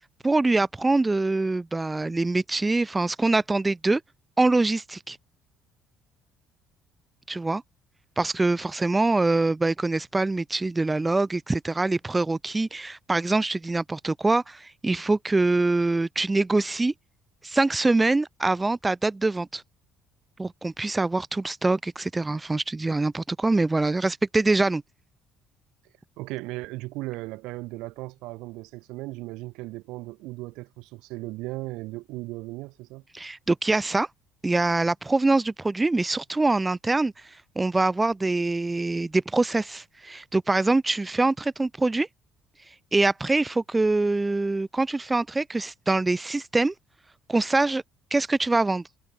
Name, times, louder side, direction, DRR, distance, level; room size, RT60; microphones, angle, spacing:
voice 1, 0.2-4.0 4.4-5.2 7.3-7.6 8.2-16.9 17.4-19.6 20.4-24.8 33.1-34.1 34.4-42.1 42.9-46.7 47.3-47.8 48.1-48.8, right 2 dB, 10° right, 0.3 m, -24 dB
voice 2, 26.2-33.0, right 21 dB, 85° right, 1.1 m, -36 dB
cardioid pair, 175°, 0 cm